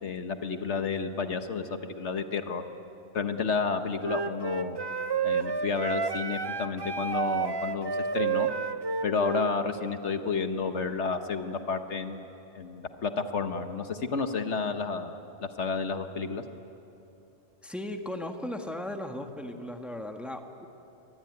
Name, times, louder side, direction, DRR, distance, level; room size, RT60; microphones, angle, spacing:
voice 1, 0.0-2.6 3.1-4.8 5.2-8.5 9.0-12.3 12.5-15.1 15.4-16.4, left 5 dB, 65° left, 8 dB, 1.4 m, -31 dB
Wind instrument woodwind instrument, 4.0-9.5, right 5 dB, 30° right, 0.5 m, -30 dB
voice 2, 17.6-20.7, left 1 dB, ahead, 4 dB, 1.4 m, -37 dB
24.5 x 20.0 x 9.6 m, 3.0 s
omnidirectional pair, 1.3 m